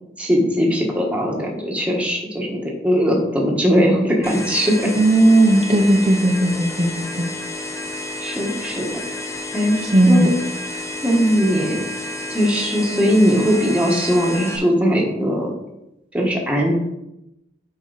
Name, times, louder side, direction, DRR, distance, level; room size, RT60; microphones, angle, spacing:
voice 1, 0.2-4.9 8.2-9.0 9.5-9.8 10.1-10.3 11.0-11.8 12.3-15.5 16.1-16.7, equal, 5° right, -1 dB, 1.4 m, -19 dB
sound 1, 4.2-14.6, left 1 dB, 15° left, 0.9 m, -31 dB
voice 2, 5.0-7.3 9.8-10.3, right 1 dB, 30° right, -1 dB, 0.9 m, -16 dB
8.3 x 5.4 x 4.0 m, 0.87 s
head